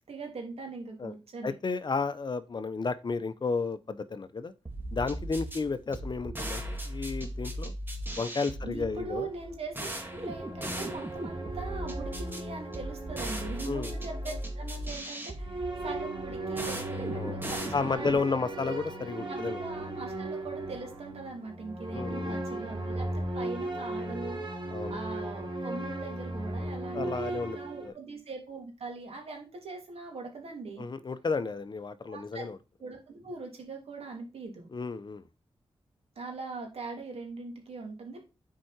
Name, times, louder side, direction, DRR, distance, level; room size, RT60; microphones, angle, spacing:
voice 1, 0.1-1.5 8.6-18.4 19.2-23.1 23.3-30.9 32.1-32.5 32.8-34.7 36.1-38.2, right 3 dB, 75° right, 2.9 m, -41 dB
voice 2, 1.4-4.5 4.9-7.7 8.2-9.3 13.6-13.9 17.1-17.4 17.7-19.6 21.9-22.4 24.7-25.0 26.9-27.9 30.8-32.6 34.7-35.2, left 4 dB, 45° left, 0.8 m, -32 dB
sound 1, 4.7-18.3, right 1 dB, 20° right, 2.0 m, -38 dB
sound 2, 8.9-14.8 15.4-27.9, right 1 dB, 50° right, 3.2 m, -37 dB
7.5 x 4.8 x 4.4 m
cardioid pair, 65°, 10 cm